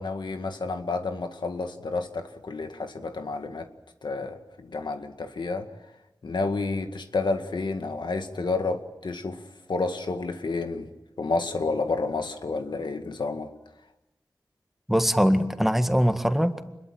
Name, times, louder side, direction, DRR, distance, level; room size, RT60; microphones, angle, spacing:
voice 1, 0.0-3.7 4.0-5.7 6.2-9.4 9.7-10.9 11.2-13.5, left 3 dB, 85° left, 6 dB, 2.0 m, -30 dB
voice 2, 14.9-16.7, equal, 5° right, 7 dB, 1.8 m, -22 dB
26.5 x 21.5 x 8.9 m, 0.97 s
wide cardioid pair, 70°, 8 cm